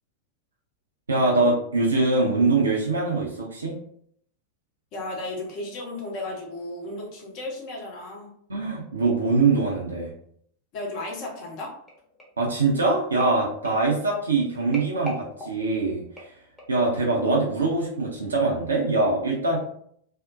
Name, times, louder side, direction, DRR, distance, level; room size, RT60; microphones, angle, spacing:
voice 1, 1.1-3.7 8.5-10.1 12.4-16.0 16.7-19.6, right 3 dB, 75° right, -2 dB, 0.5 m, -23 dB
voice 2, 4.9-8.3 10.7-11.7, left 2 dB, 45° left, -1 dB, 0.8 m, -34 dB
sound 1, 11.9-16.9 17.5-17.7 18.0-18.1, left 2 dB, 5° left, 0.8 m, -42 dB
2.5 x 2.0 x 2.5 m, 0.65 s
figure-of-eight pair, 90°, 0 cm